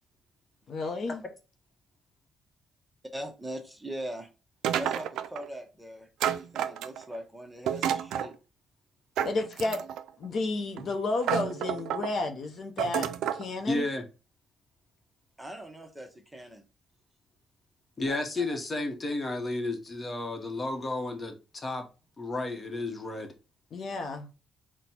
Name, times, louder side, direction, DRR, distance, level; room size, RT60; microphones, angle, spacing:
voice 1, 0.7-1.2 9.2-9.8 10.2-13.9 23.7-24.3, left 3 dB, 55° left, 0.7 m, -32 dB
voice 2, 3.1-4.3 4.8-8.4 9.2-9.3 9.7-9.8 15.4-16.6 18.1-18.2 18.5-18.6, equal, 10° right, 0.8 m, -41 dB
sound 1, 4.6-5.4 6.2-7.2 7.7-8.3 9.2-10.1 10.8-10.9 11.2-12.1 12.8-13.5, right 10 dB, 85° right, 0.3 m, -30 dB
voice 3, 13.7-14.0 18.0-21.8 22.2-23.3, left 2 dB, 30° left, 1.0 m, -32 dB
4.0 x 2.2 x 4.3 m
cardioid pair, 90°, 0 cm